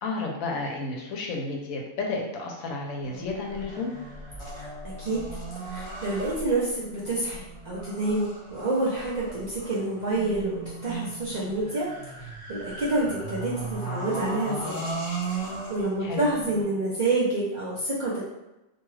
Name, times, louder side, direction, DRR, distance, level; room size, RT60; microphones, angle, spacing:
voice 1, 0.0-3.9 16.0-16.3, left 3 dB, 85° left, 1 dB, 1.1 m, -32 dB
sound 1, 3.0-16.6, right 3 dB, 25° left, 0.8 m, -37 dB
voice 2, 5.6-11.9 12.2-14.8 15.4-18.3, right 2 dB, 50° right, -7 dB, 0.5 m, -28 dB
2.8 x 2.3 x 3.1 m, 0.99 s
omnidirectional pair, 1.4 m